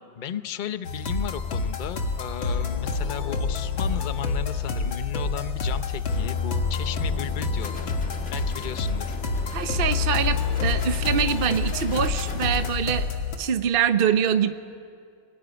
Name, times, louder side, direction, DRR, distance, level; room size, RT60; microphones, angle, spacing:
voice 1, 0.2-7.9 8.3-9.2, left 9 dB, 65° left, 11 dB, 0.4 m, -35 dB
sound 1, 0.8-13.4, left 4 dB, 85° left, 2.6 m, -27 dB
sound 2, 7.6-12.7, left 2 dB, 40° left, 2.1 m, -39 dB
voice 2, 9.5-13.1 13.4-14.5, right 8 dB, 55° right, 9 dB, 0.6 m, -24 dB
28.0 x 19.0 x 9.9 m, 2.4 s
omnidirectional pair, 2.1 m